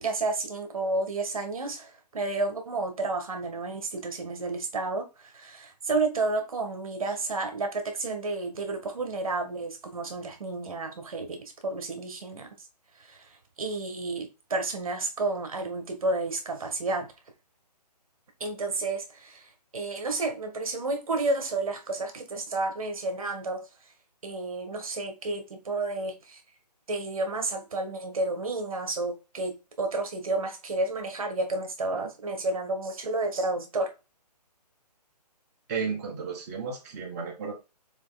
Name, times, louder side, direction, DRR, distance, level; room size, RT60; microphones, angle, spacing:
voice 1, 0.0-12.7 13.0-17.1 18.4-23.7 24.2-26.4 26.9-33.9, right 2 dB, 55° right, 1.9 m, -31 dB
voice 2, 35.7-37.5, right 5 dB, 25° right, 1.5 m, -33 dB
7.0 x 3.4 x 4.0 m
hypercardioid pair, 165°, 21 cm